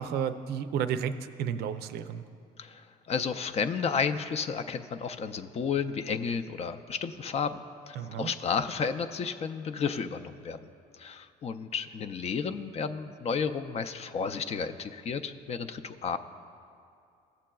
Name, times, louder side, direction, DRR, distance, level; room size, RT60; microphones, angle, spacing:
voice 1, 0.0-2.2 8.0-8.3, right 8 dB, 70° right, 10 dB, 0.5 m, -32 dB
voice 2, 2.6-7.6 7.9-10.6 11.0-16.2, left 6 dB, 40° left, 9 dB, 0.4 m, -32 dB
16.0 x 7.4 x 2.3 m, 2.4 s
cardioid pair, 110°, 17 cm